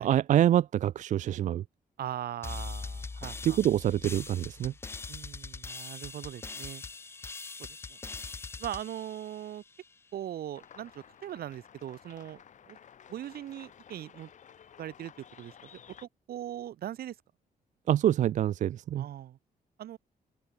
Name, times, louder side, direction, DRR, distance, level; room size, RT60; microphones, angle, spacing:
voice 1, 0.0-1.6 3.4-4.7 17.9-19.1, right 11 dB, 55° right, 0.4 m, -26 dB
voice 2, 2.0-3.6 5.1-6.8 7.6-8.0 8.6-9.6 10.1-12.8 13.1-14.3 14.8-15.1 15.4-15.5 16.0-17.2 19.0-19.4 19.8-20.0, right 11 dB, 80° right, 2.8 m, -40 dB
sound 1, 2.4-9.9, left 4 dB, 15° left, 0.4 m, -42 dB
sound 2, 10.5-16.1, left 8 dB, 50° left, 4.1 m, -54 dB
open air
wide cardioid pair, 165°, 16 cm